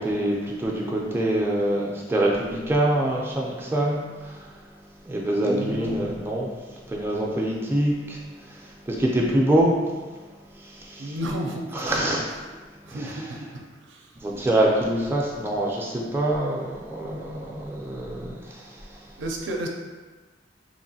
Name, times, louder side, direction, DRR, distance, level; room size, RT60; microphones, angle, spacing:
voice 1, 0.0-4.4 5.1-6.5 6.9-8.2 8.9-9.7 10.9-11.1 11.7-12.2 13.0-13.1 14.2-18.6, right 1 dB, 10° right, -3 dB, 0.3 m, -25 dB
voice 2, 5.4-6.2 11.0-12.1 12.4-12.6 12.8-13.4 13.8-14.1 19.2-19.7, right 1 dB, 90° right, 1 dB, 0.4 m, -32 dB
3.0 x 2.5 x 2.7 m, 1.3 s
head